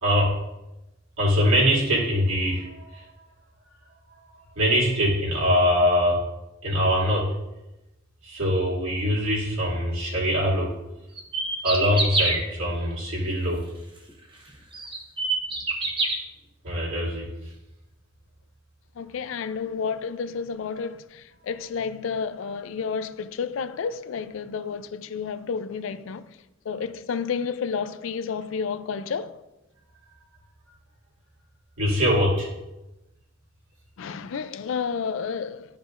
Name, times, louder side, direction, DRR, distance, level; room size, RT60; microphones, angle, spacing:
voice 1, 0.0-0.4 1.2-3.0 4.6-6.2 6.6-7.3 8.2-10.7 11.6-13.6 16.6-17.3 31.8-32.5, equal, 75° right, 2.4 m, -23 dB
sound 1, 11.2-12.4 14.1-14.2 14.7-16.2, right 3 dB, 25° right, 1.0 m, -25 dB
voice 2, 19.0-26.4 26.7-29.4 34.0-35.8, left 6 dB, 70° left, 0.4 m, -31 dB
11.5 x 5.1 x 2.5 m
head